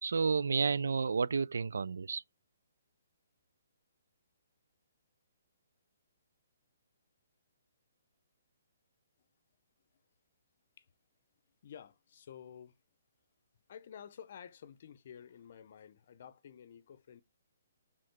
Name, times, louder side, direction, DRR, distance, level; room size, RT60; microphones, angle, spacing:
voice 1, 0.0-2.2, right 5 dB, 90° right, 0.3 m, -31 dB
voice 2, 11.6-12.8 13.7-17.2, left 8 dB, 45° left, 0.6 m, -51 dB
6.5 x 3.6 x 4.6 m
hypercardioid pair, 170°, 0 cm